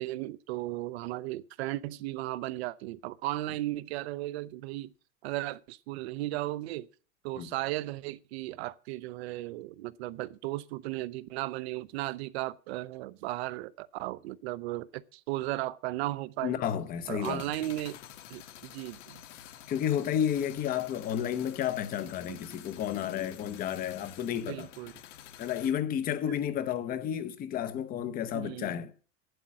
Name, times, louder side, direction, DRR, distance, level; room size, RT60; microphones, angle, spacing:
voice 1, 0.0-4.9 5.2-6.9 7.2-16.6 17.1-18.0 18.3-19.2 22.3-22.4 24.5-24.9 26.3-26.4 28.3-28.9, right 17 dB, 60° right, 0.7 m, -36 dB
voice 2, 16.4-17.4 19.7-24.7 25.4-28.9, left 9 dB, 25° left, 0.8 m, -31 dB
sound 1, 17.2-25.7, left 11 dB, 80° left, 1.5 m, -49 dB
9.2 x 8.0 x 7.3 m
supercardioid pair, 155°, 36 cm